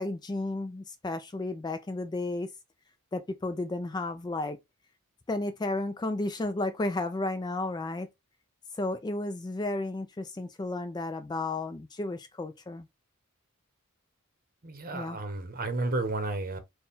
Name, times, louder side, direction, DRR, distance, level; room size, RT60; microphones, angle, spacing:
voice 1, 0.0-2.5 3.1-4.6 5.3-8.1 8.8-12.9 14.9-15.2, left 2 dB, 20° left, 0.3 m, -33 dB
voice 2, 14.6-16.6, right 2 dB, 40° right, 0.8 m, -32 dB
4.3 x 2.2 x 3.5 m
head